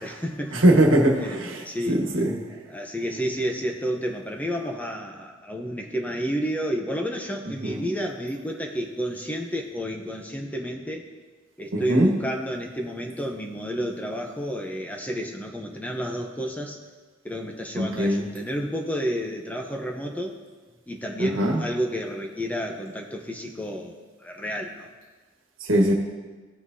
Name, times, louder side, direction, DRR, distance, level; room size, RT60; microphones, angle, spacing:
voice 1, 0.0-0.6 1.2-2.0 2.7-11.1 11.6-16.8 17.2-20.4 20.9-23.9 24.2-24.9, equal, 10° left, 2 dB, 0.7 m, -30 dB
voice 2, 0.5-1.6 1.9-2.3 7.6-7.8 11.7-12.1 17.7-18.3 21.2-21.6 25.6-25.9, right 1 dB, 70° right, 1 dB, 1.4 m, -21 dB
16.0 x 5.7 x 2.7 m, 1.3 s
head